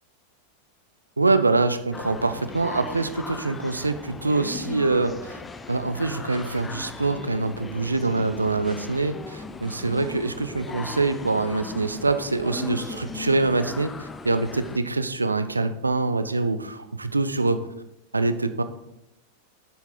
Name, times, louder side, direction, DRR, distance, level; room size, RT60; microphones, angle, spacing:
voice 1, 1.2-5.4 5.7-17.7 18.1-18.6, right 3 dB, 80° right, 10 dB, 0.5 m, -25 dB
sound 1, 1.9-14.8, left 3 dB, 15° left, 0.4 m, -38 dB
7.2 x 7.0 x 3.8 m, 0.85 s
figure-of-eight pair, 90°, 0 cm